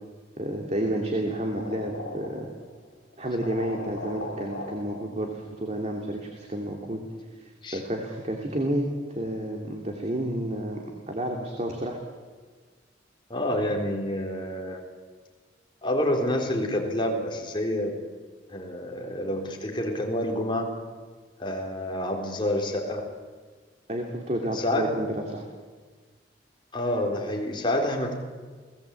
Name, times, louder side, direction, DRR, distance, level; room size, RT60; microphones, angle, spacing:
voice 1, 0.4-2.5 3.2-7.0 7.4-8.8 9.1-10.8 11.1-12.0 23.9-25.5, right 1 dB, 35° right, 2 dB, 2.7 m, -30 dB
sound 1, 1.5-2.8 3.1-3.2 3.4-5.6, left 2 dB, 65° left, 6.8 m, -39 dB
voice 2, 13.3-14.8 15.8-18.0 18.5-20.7 21.4-23.0 24.5-25.0 26.7-28.1, left 1 dB, 25° left, 1 dB, 4.0 m, -28 dB
29.5 x 19.0 x 8.5 m, 1.5 s
head